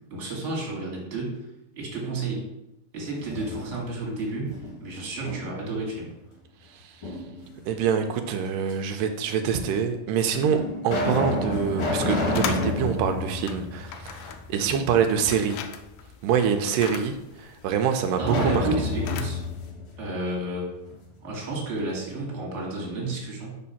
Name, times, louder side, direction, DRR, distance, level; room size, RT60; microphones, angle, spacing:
voice 1, 0.1-1.4 1.7-2.5 2.9-6.1 14.6-14.8 18.1-19.4 20.0-20.7 21.2-23.6, right 2 dB, 30° right, -4 dB, 1.7 m, -31 dB
sound 1, 3.1-4.1 4.5-5.8 7.0-7.8 8.7-8.8 9.7-9.8 10.4-14.5 14.8-14.9 18.2-21.0, left 2 dB, 55° left, 1.7 m, -30 dB
voice 2, 7.7-15.6 16.2-18.7, right 7 dB, 85° right, 6 dB, 2.1 m, -25 dB
sound 2, 11.5-19.7, left 8 dB, 85° left, 1.5 m, -40 dB
5.2 x 4.5 x 5.6 m, 0.92 s
omnidirectional pair, 3.8 m